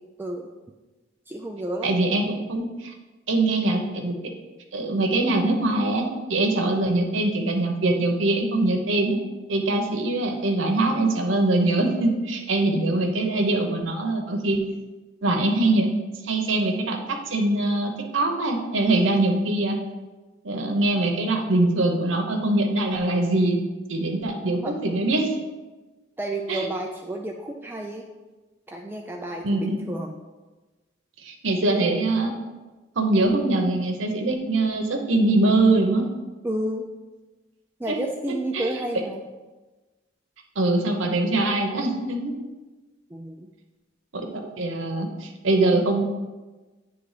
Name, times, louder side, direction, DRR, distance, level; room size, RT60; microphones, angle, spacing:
voice 1, 1.3-1.9 24.6-24.8 26.2-28.1 28.7-30.2 36.4-36.9 37.8-39.2 43.1-43.5, right 1 dB, 10° right, 1 dB, 0.4 m, -31 dB
voice 2, 1.8-2.9 3.3-4.1 4.7-9.2 9.5-14.6 15.2-15.9 16.2-19.8 20.4-23.6 23.9-25.3 26.5-26.7 29.4-29.8 31.2-32.3 33.0-36.0 37.9-38.0 38.5-38.7 40.6-42.3 44.1-44.3 44.6-46.0, right 2 dB, 85° right, 2 dB, 0.9 m, -23 dB
9.4 x 3.5 x 4.9 m, 1.2 s
head